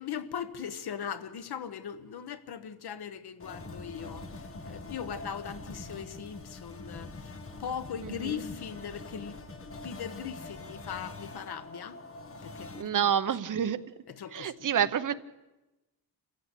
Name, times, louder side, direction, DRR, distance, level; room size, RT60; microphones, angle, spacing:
voice 1, 0.0-12.0 12.4-13.1 14.1-14.7, left 8 dB, 75° left, 1.3 m, -39 dB
sound 1, 3.4-12.8, left 2 dB, 35° left, 1.6 m, -44 dB
voice 2, 8.0-8.4 12.8-13.8 14.3-15.1, right 9 dB, 55° right, 0.9 m, -28 dB
27.5 x 15.0 x 8.3 m
wide cardioid pair, 165°, 38 cm